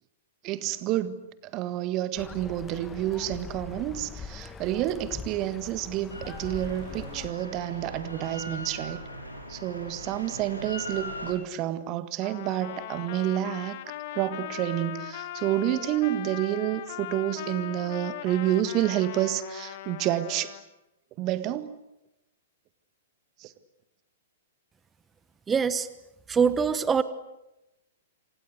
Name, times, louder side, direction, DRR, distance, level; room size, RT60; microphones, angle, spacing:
voice 1, 0.4-1.2 1.4-9.0 9.5-13.8 14.1-20.6 21.2-21.8 23.4-23.5, right 13 dB, 35° right, 1.7 m, -29 dB
sound 1, 2.2-7.3, left 5 dB, 15° left, 1.9 m, -42 dB
Drill, 6.1-11.3, equal, 85° left, 6.5 m, -40 dB
Trumpet, 12.2-20.6, left 12 dB, 45° left, 1.9 m, -39 dB
voice 2, 25.5-25.9 26.3-27.0, right 6 dB, 15° right, 1.2 m, -23 dB
28.0 x 25.5 x 8.0 m
figure-of-eight pair, 105°, 0 cm